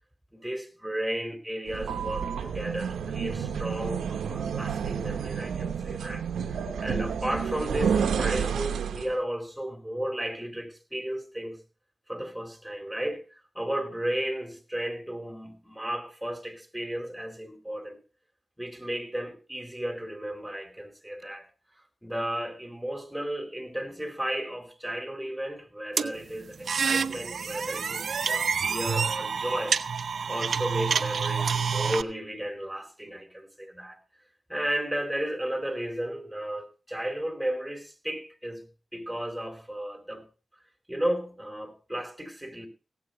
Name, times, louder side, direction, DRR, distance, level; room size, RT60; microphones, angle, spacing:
voice 1, 0.3-11.6 12.1-18.0 18.6-21.5 22.0-29.8 30.3-34.0 34.5-38.6 38.9-40.2 40.9-42.7, right 1 dB, ahead, 4.1 m, -34 dB
sound 1, 1.7-9.2, right 7 dB, 85° right, 1.1 m, -30 dB
sound 2, 26.0-32.0, right 6 dB, 70° right, 0.7 m, -28 dB
17.0 x 7.9 x 5.5 m
cardioid pair, 45°, 0 cm